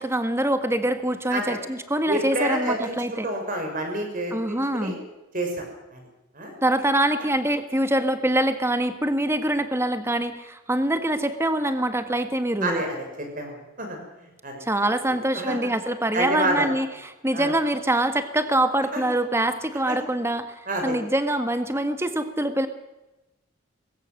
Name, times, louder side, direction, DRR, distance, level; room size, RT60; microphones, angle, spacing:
voice 1, 0.0-3.3 4.3-5.0 6.6-12.8 14.6-22.7, right 1 dB, 10° right, 9 dB, 1.5 m, -24 dB
voice 2, 2.1-4.9 5.3-5.6 5.9-6.0 6.3-6.5 12.6-13.5 13.8-14.0 14.4-14.6 15.3-15.7 16.1-16.7 17.3-17.5 18.9-19.0 19.9-20.0 20.7-21.0, right 1 dB, 40° right, 3 dB, 6.1 m, -28 dB
20.5 x 17.0 x 7.7 m, 1.0 s
head